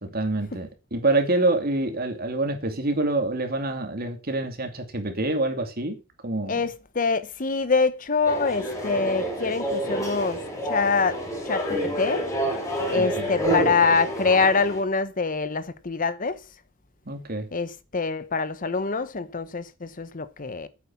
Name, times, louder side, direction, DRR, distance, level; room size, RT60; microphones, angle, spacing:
voice 1, 0.0-6.6 12.9-13.3 17.1-17.5, right 2 dB, 50° right, 2.6 m, -26 dB
voice 2, 6.4-12.2 12.9-16.4 17.5-20.7, left 4 dB, 45° left, 0.9 m, -25 dB
sound 1, 8.2-14.8, right 1 dB, 15° left, 4.7 m, -28 dB
9.1 x 7.8 x 7.1 m
head